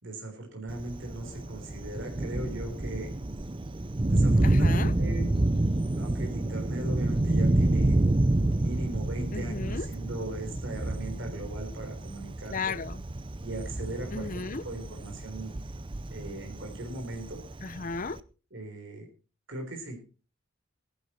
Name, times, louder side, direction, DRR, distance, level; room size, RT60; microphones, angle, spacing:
voice 1, 0.0-3.1 4.1-5.3 6.0-8.0 8.5-12.8 13.4-15.5 16.1-17.4 18.5-19.1 19.5-20.0, right 2 dB, 60° right, 3.7 m, -38 dB
Thunder, 0.7-18.2, right 2 dB, 25° right, 0.6 m, -28 dB
voice 2, 4.4-4.9 9.3-9.9 12.5-13.0 14.1-14.6 17.6-18.2, left 4 dB, 40° left, 0.6 m, -34 dB
18.0 x 11.0 x 4.4 m
head